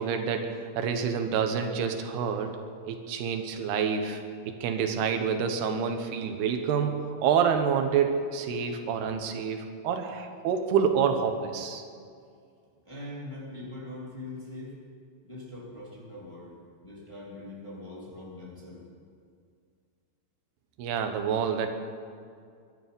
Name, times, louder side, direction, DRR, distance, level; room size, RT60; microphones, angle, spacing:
voice 1, 0.0-2.6 2.8-4.2 4.5-11.8 20.8-21.7, right 7 dB, 85° right, 6 dB, 3.2 m, -28 dB
voice 2, 12.8-14.7 15.2-16.5 16.8-18.8, left 1 dB, 10° left, -5 dB, 2.5 m, -42 dB
22.5 x 12.0 x 5.3 m, 2.2 s
omnidirectional pair, 4.5 m